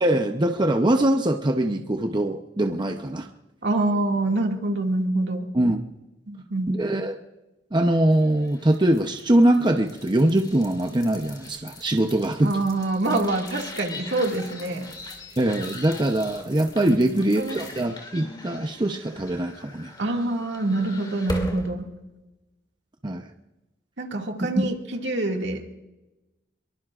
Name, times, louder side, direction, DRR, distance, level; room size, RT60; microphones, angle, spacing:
voice 1, 0.0-3.3 5.5-5.8 6.7-7.2 7.7-12.5 15.4-19.9 23.0-23.2 24.6-24.7, right 1 dB, 25° right, 5 dB, 0.7 m, -22 dB
voice 2, 3.6-5.5 6.3-6.7 12.4-14.9 16.9-17.6 20.0-21.9 24.0-25.6, right 2 dB, 70° right, 2 dB, 2.2 m, -26 dB
sound 1, 8.1-21.7, left 2 dB, 25° left, 2.6 m, -40 dB
25.0 x 23.0 x 2.5 m, 1.0 s
head